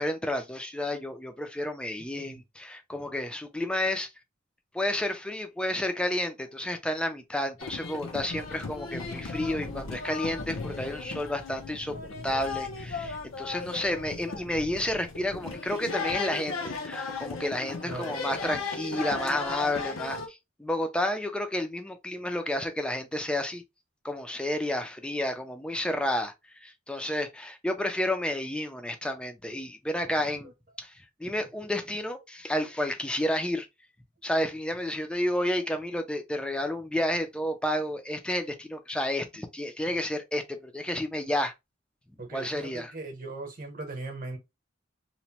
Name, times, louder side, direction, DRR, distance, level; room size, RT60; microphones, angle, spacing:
voice 1, 0.0-4.1 4.7-12.0 12.2-23.6 24.0-30.5 30.8-33.7 34.2-41.5 42.3-42.9, left 1 dB, 5° left, 0.4 m, -31 dB
sound 1, 7.6-20.3, left 4 dB, 85° left, 0.7 m, -36 dB
voice 2, 17.8-18.2 42.2-44.4, right 2 dB, 45° right, 0.9 m, -39 dB
3.0 x 2.1 x 2.8 m
head